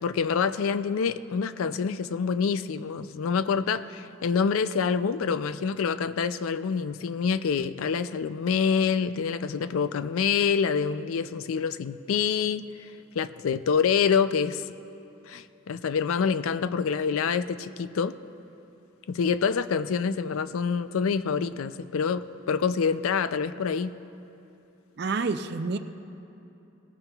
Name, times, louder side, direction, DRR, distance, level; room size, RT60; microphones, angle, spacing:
voice 1, 0.0-12.7 13.1-14.6 15.3-18.1 19.1-23.9, left 6 dB, 85° left, 13 dB, 0.4 m, -26 dB
voice 2, 25.0-25.8, right 4 dB, 50° right, 10 dB, 0.4 m, -28 dB
17.5 x 14.0 x 2.3 m, 2.9 s
head